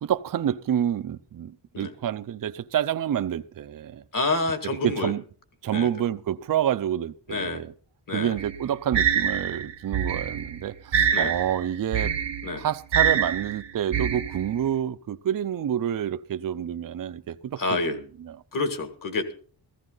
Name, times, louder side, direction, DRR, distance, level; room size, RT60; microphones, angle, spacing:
voice 1, 0.0-4.0 4.8-5.2 5.6-7.7 8.1-12.1 12.6-18.0 18.2-18.3, right 10 dB, 50° right, 0.5 m, -28 dB
voice 2, 4.1-5.1 5.7-5.9 7.3-7.6 8.1-8.4 11.1-11.3 12.4-12.7 17.6-18.0 18.5-19.3, left 3 dB, 50° left, 1.8 m, -28 dB
sound 1, 8.4-14.7, right 8 dB, 70° right, 1.0 m, -26 dB
15.5 x 14.5 x 3.9 m
wide cardioid pair, 170°, 43 cm